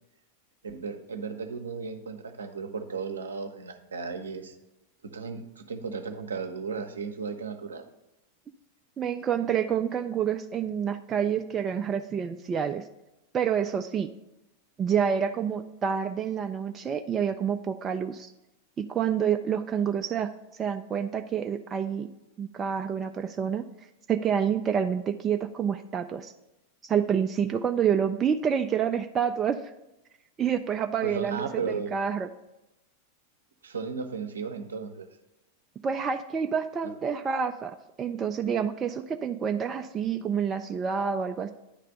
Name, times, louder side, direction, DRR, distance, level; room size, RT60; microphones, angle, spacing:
voice 1, 0.6-4.6 5.0-7.9 31.0-31.9 33.6-35.1, right 5 dB, 70° right, 6 dB, 0.7 m, -35 dB
voice 2, 9.0-12.8 13.3-14.1 14.8-18.3 18.8-20.3 20.6-22.1 22.4-23.6 24.1-26.3 26.8-29.7 30.4-32.3 35.8-41.5, right 7 dB, 25° right, 7 dB, 0.3 m, -28 dB
9.8 x 3.3 x 6.6 m, 0.94 s
figure-of-eight pair, 90°, 0 cm